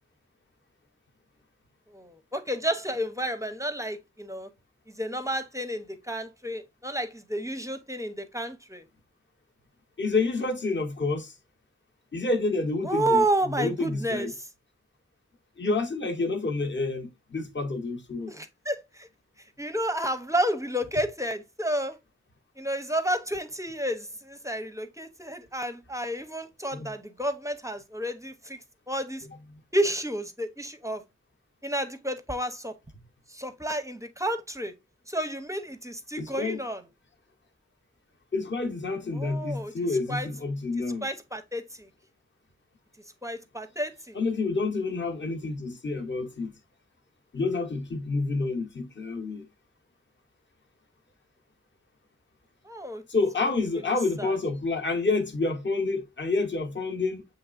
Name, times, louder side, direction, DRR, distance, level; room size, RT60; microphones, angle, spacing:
voice 1, 1.9-4.5 4.9-8.8 12.8-14.5 18.3-19.1 19.6-22.0 22.6-28.6 28.9-29.3 29.7-31.0 31.6-32.7 33.3-34.7 35.1-36.8 39.1-39.7 40.1-40.3 41.0-41.9 43.2-44.2 52.6-53.0 54.2-54.4, right 1 dB, 10° right, 0.6 m, -31 dB
voice 2, 10.0-11.3 12.1-14.3 15.6-18.3 26.7-26.9 36.2-36.6 38.3-41.1 44.1-46.5 47.3-49.5 53.1-57.2, left 3 dB, 35° left, 0.8 m, -28 dB
7.1 x 3.0 x 2.4 m
wide cardioid pair, 55°, 31 cm